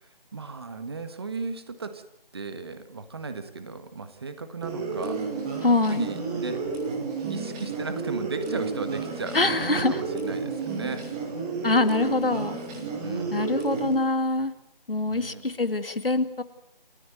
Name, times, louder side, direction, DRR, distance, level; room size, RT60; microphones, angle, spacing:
voice 1, 0.0-2.0 2.3-5.2 5.9-6.7 7.2-11.1 13.0-13.4 15.1-15.4, right 4 dB, 25° right, 10 dB, 1.5 m, -36 dB
sound 1, 4.6-13.9, right 4 dB, 5° right, 1.1 m, -31 dB
voice 2, 5.6-6.1 9.3-10.0 11.6-12.6 13.3-14.5 14.9-16.4, left 2 dB, 70° left, 11 dB, 2.2 m, -24 dB
29.5 x 14.5 x 9.1 m, 0.79 s
figure-of-eight pair, 160°, 29 cm